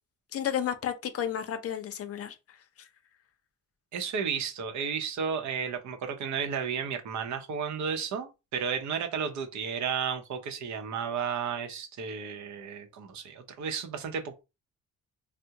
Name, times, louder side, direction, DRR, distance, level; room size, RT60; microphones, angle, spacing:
voice 1, 0.3-2.9, left 9 dB, 50° left, 0.5 m, -33 dB
voice 2, 3.9-14.4, right 6 dB, 70° right, 0.7 m, -33 dB
3.5 x 2.1 x 2.8 m
cardioid pair, 90°, 30 cm